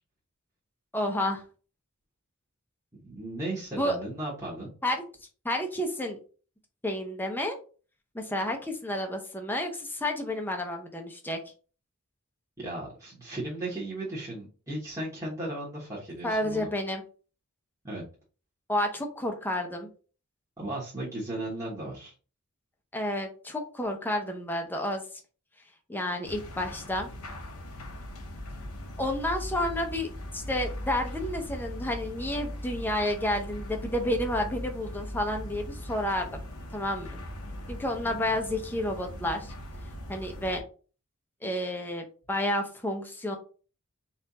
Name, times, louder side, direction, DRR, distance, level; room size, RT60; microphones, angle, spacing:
voice 1, 0.9-1.4 3.8-4.0 4.8-5.0 5.4-6.2 6.8-7.6 8.1-11.4 16.2-17.0 18.7-19.9 22.9-25.0 25.9-27.1 29.0-36.3 36.7-37.2 37.7-39.5 40.1-40.6 41.4-43.4, left 1 dB, 10° left, 3 dB, 0.6 m, -30 dB
voice 2, 3.0-4.7 12.6-16.7 17.8-18.0 20.6-22.1 38.0-38.3, right 1 dB, 15° right, -7 dB, 1.2 m, -36 dB
sound 1, 26.2-40.6, left 1 dB, 85° left, 1.1 m, -40 dB
4.3 x 2.5 x 4.0 m, 0.37 s
head